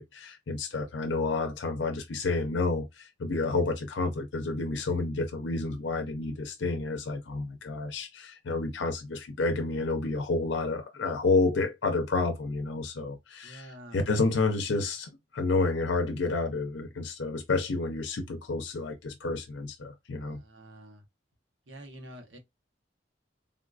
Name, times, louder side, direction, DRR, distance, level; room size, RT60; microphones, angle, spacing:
voice 1, 0.0-20.4, left 3 dB, 75° left, 0.5 m, -30 dB
voice 2, 13.4-14.0 20.2-21.0 21.7-22.4, right 1 dB, 85° right, 0.9 m, -47 dB
3.6 x 2.3 x 2.4 m
head